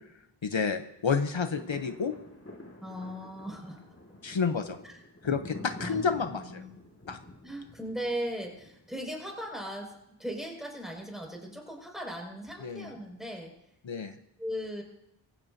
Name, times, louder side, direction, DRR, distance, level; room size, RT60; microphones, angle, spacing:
voice 1, 0.4-2.1 4.2-4.8 5.2-6.6 7.1-7.2 12.6-12.9 13.8-14.2, left 5 dB, 75° left, 8 dB, 0.9 m, -30 dB
sound 1, 1.1-9.4 9.9-10.0, left 1 dB, 30° left, 2.1 m, -47 dB
voice 2, 2.8-4.0 4.8-5.0 5.8-6.8 7.4-13.5 14.1-14.8, equal, ahead, 0 dB, 5.6 m, -38 dB
23.0 x 15.5 x 2.7 m, 0.83 s
wide cardioid pair, 45°, 46 cm